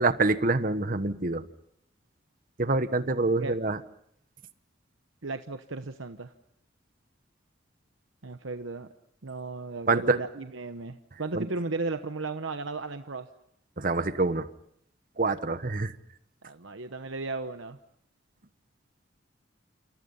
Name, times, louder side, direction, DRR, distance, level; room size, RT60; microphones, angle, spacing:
voice 1, 0.0-1.5 2.6-3.8 9.9-10.2 11.3-11.5 13.8-14.5 15.2-15.9, right 3 dB, 45° right, 12 dB, 1.2 m, -26 dB
voice 2, 5.2-6.3 8.2-8.9 9.2-13.3 16.4-17.8, right 3 dB, 85° right, 8 dB, 1.0 m, -35 dB
28.5 x 28.5 x 5.6 m, 0.70 s
head